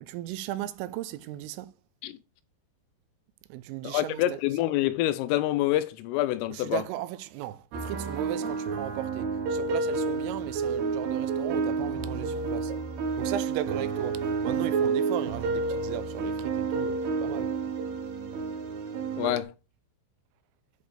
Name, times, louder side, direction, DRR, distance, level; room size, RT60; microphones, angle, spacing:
voice 1, 0.0-1.7 3.5-4.6 6.5-12.7 13.2-17.6, right 14 dB, 85° right, 3.3 m, -36 dB
voice 2, 3.8-6.8 19.2-19.5, left 15 dB, 90° left, 3.4 m, -27 dB
sound 1, 7.7-19.4, right 4 dB, 65° right, 3.1 m, -30 dB
10.0 x 6.6 x 3.5 m
omnidirectional pair, 5.8 m